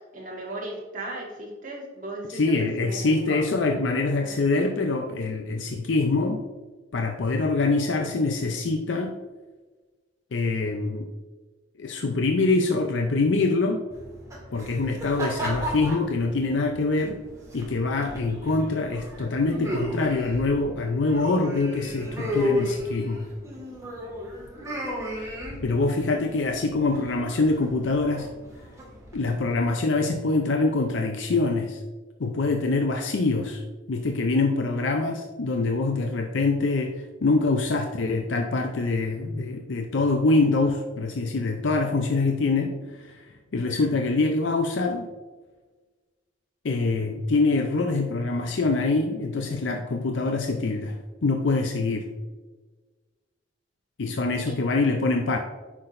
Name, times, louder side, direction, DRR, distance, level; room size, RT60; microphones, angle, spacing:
voice 1, 0.1-4.3 54.5-54.6, right 2 dB, 45° right, -3 dB, 2.0 m, -37 dB
voice 2, 2.3-6.4 6.9-9.2 10.3-11.1 11.8-13.9 14.5-17.2 17.5-23.3 25.2-25.3 25.6-28.3 29.1-31.8 32.2-33.6 33.9-45.1 46.6-52.1 54.0-55.4, left 3 dB, 80° left, 4 dB, 0.6 m, -25 dB
sound 1, 13.9-29.5, equal, 15° right, 1.8 m, -35 dB
9.6 x 6.0 x 2.6 m, 1.3 s
head